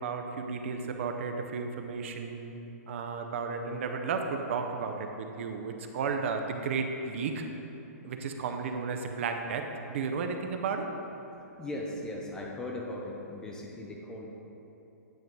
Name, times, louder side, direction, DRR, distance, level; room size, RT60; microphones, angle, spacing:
voice 1, 0.0-2.6 2.9-7.4 8.0-10.9, right 5 dB, 50° right, 5 dB, 0.5 m, -33 dB
voice 2, 11.6-14.3, left 1 dB, 10° left, -1 dB, 0.4 m, -38 dB
9.2 x 3.1 x 5.2 m, 2.9 s
hypercardioid pair, 160°, 9 cm